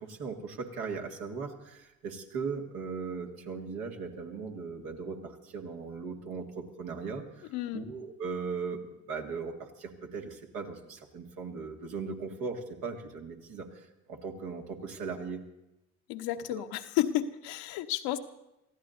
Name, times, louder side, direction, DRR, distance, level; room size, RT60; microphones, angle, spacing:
voice 1, 0.0-8.8 9.1-15.4 16.5-16.6, right 5 dB, 65° right, 1 dB, 2.2 m, -38 dB
voice 2, 7.5-7.8 16.1-18.2, left 13 dB, 65° left, 8 dB, 1.0 m, -31 dB
29.0 x 15.5 x 2.7 m, 0.90 s
hypercardioid pair, 50°, 38 cm